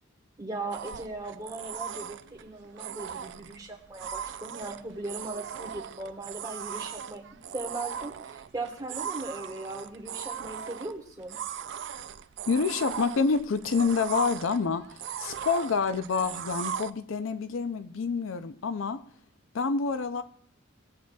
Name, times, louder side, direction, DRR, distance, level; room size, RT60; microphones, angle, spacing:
voice 1, 0.4-7.2 7.5-11.4, right 2 dB, 20° right, 2 dB, 1.3 m, -38 dB
sound 1, 0.7-16.9, right 8 dB, 60° right, 0.3 m, -39 dB
voice 2, 12.5-19.0 19.5-20.2, left 5 dB, 70° left, 10 dB, 0.5 m, -28 dB
17.5 x 7.7 x 2.3 m, 0.66 s
head